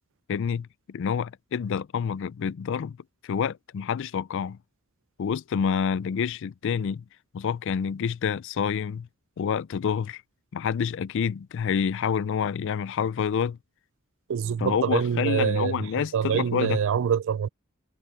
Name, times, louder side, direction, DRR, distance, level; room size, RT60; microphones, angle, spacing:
voice 1, 0.3-3.0 3.2-4.6 5.2-7.0 7.3-9.1 9.4-10.2 10.5-13.6 14.6-16.8, left 7 dB, 60° left, 0.4 m, -28 dB
voice 2, 14.3-17.5, right 7 dB, 60° right, 0.3 m, -25 dB
head